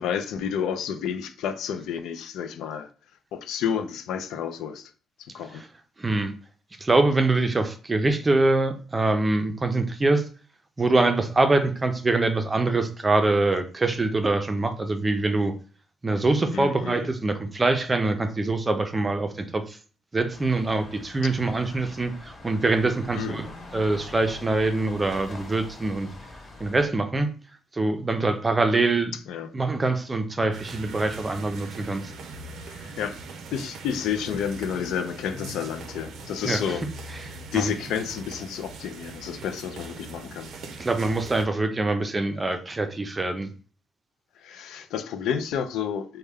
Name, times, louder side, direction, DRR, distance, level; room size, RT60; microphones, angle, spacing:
voice 1, 0.0-2.9 3.3-4.9 5.2-5.6 16.5-17.1 21.2-21.3 21.7-21.8 23.1-23.5 29.3-29.5 32.6-33.2 33.5-36.9 37.3-40.5 44.4-46.2, left 8 dB, 85° left, 0.4 m, -30 dB
voice 2, 6.0-6.3 6.8-10.3 10.8-15.5 16.0-19.8 20.1-23.5 23.7-26.1 26.6-27.3 27.7-29.1 29.5-32.1 36.4-36.6 37.2-37.7 40.8-43.5, right 2 dB, 25° right, 0.5 m, -24 dB
sound 1, 20.3-26.9, left 2 dB, 35° left, 0.9 m, -44 dB
sound 2, 30.5-41.5, right 2 dB, 75° right, 0.5 m, -41 dB
3.3 x 2.1 x 3.4 m
cardioid pair, 90°, 0 cm